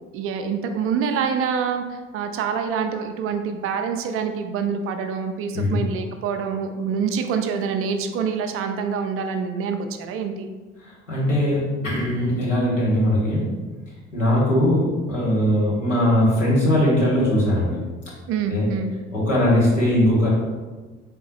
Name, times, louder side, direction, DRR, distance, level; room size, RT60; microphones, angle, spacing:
voice 1, 0.1-10.5 18.3-18.9, right 6 dB, 40° right, 6 dB, 0.4 m, -26 dB
voice 2, 10.8-13.5 14.1-17.8 18.5-18.6 19.1-20.3, left 1 dB, 90° left, -7 dB, 1.0 m, -20 dB
3.8 x 3.5 x 2.8 m, 1.3 s
figure-of-eight pair, 50°, 36 cm